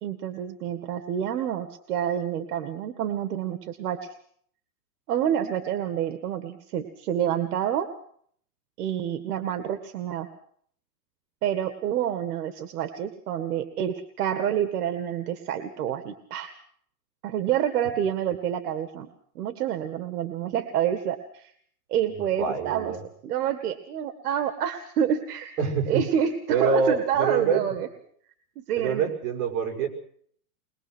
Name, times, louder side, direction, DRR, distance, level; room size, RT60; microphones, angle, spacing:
voice 1, 0.0-4.1 5.1-7.9 8.8-10.3 11.4-16.6 17.2-19.1 19.4-21.5 21.9-23.0 23.2-25.6 25.9-27.9 28.6-29.1, right 9 dB, 75° right, 9 dB, 1.9 m, -28 dB
voice 2, 22.1-23.0 25.6-26.0 26.5-27.7 28.7-29.9, right 5 dB, 50° right, 4 dB, 5.7 m, -26 dB
22.5 x 22.0 x 6.2 m, 0.62 s
supercardioid pair, 160°, 46 cm